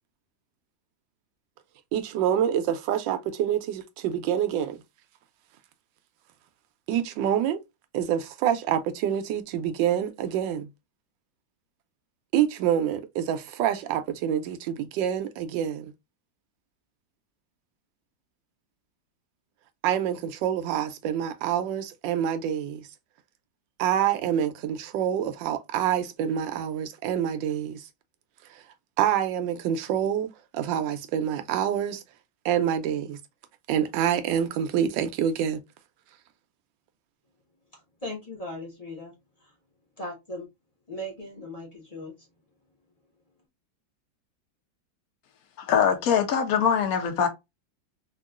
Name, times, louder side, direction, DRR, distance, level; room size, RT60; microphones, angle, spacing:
voice 1, 1.9-4.8 6.9-7.6 7.9-10.7 12.3-15.9 19.8-22.9 23.8-27.8 28.5-28.6 29.0-30.3 30.5-32.0 32.4-33.2 33.7-35.6, right 9 dB, 80° right, 1.3 m, -26 dB
voice 2, 38.0-39.1 40.0-40.5 40.9-42.1, left 1 dB, 35° left, 0.5 m, -37 dB
voice 3, 45.6-47.3, left 7 dB, 60° left, 1.0 m, -23 dB
3.6 x 2.3 x 2.3 m
omnidirectional pair, 2.0 m